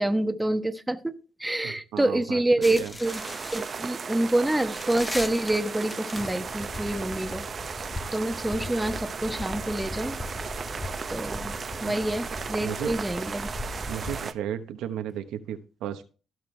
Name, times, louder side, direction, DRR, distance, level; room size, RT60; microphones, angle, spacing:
voice 1, 0.0-3.2 3.5-7.4 8.1-10.2 11.1-11.5 11.8-13.5, right 1 dB, 10° right, 8 dB, 1.1 m, -27 dB
voice 2, 1.6-2.9 11.8-12.0 12.6-13.0 13.9-16.1, right 10 dB, 90° right, 8 dB, 1.0 m, -35 dB
sound 1, 2.6-14.2, left 2 dB, 15° left, 1.2 m, -39 dB
sound 2, 3.0-14.3, right 5 dB, 40° right, 0.7 m, -35 dB
16.0 x 6.0 x 3.3 m, 0.35 s
cardioid pair, 90°, 0 cm